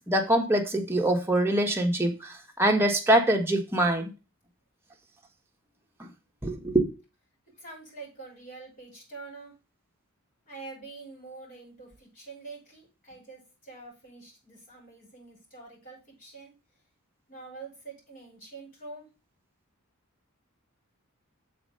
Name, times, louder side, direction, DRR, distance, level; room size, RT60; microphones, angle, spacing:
voice 1, 0.1-4.1 6.0-6.1 6.4-6.8, right 1 dB, 10° right, 1.4 m, -24 dB
voice 2, 7.6-9.5 10.5-16.5 17.3-19.1, right 3 dB, 40° left, 5.7 m, -46 dB
7.0 x 4.3 x 6.5 m
head